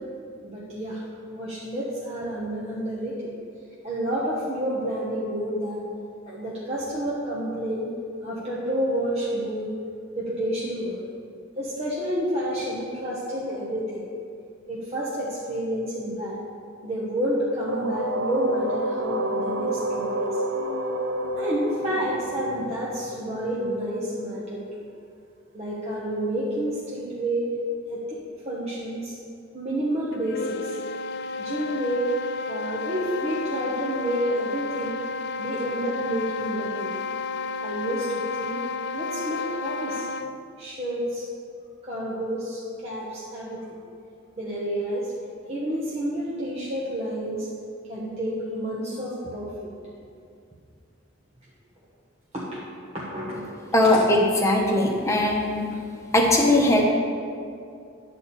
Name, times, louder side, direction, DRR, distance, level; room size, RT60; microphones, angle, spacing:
voice 1, 0.4-3.2 3.8-5.8 6.3-8.0 8.2-9.7 10.2-11.0 11.6-14.0 14.7-16.4 16.8-20.3 21.3-24.6 25.5-27.5 27.9-28.2 28.4-29.1 29.5-30.8 31.4-32.1 32.5-35.0 35.4-36.9 37.6-38.6 38.9-40.1 40.6-41.2 41.8-43.7 44.4-45.1 45.5-47.5 47.9-49.7 52.3-52.6 52.9-54.0, equal, 30° right, -7 dB, 1.1 m, -29 dB
sound 1, 17.7-23.4, right 1 dB, 75° right, 0.7 m, -29 dB
sound 2, 30.1-40.4, left 4 dB, 60° left, 0.4 m, -32 dB
voice 2, 53.7-55.7 56.1-56.8, left 1 dB, 15° left, -1 dB, 1.1 m, -20 dB
10.0 x 4.2 x 6.8 m, 2.4 s
head